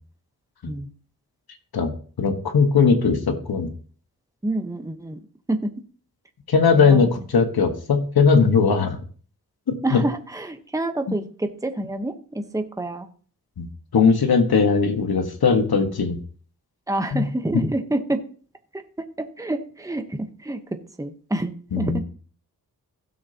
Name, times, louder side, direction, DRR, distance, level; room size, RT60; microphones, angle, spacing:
voice 1, 2.2-3.7 6.5-9.0 9.7-10.0 11.1-11.2 13.6-13.7 13.9-16.2 17.1-17.2 21.7-22.0, left 5 dB, 80° left, 6 dB, 1.4 m, -19 dB
voice 2, 4.4-5.2 5.5-5.7 6.7-7.1 9.8-13.1 16.9-18.2 18.7-19.1 19.4-20.6 21.0-22.0, right 1 dB, 10° right, 6 dB, 1.0 m, -28 dB
16.0 x 6.5 x 2.9 m, 0.43 s
wide cardioid pair, 75°, 36 cm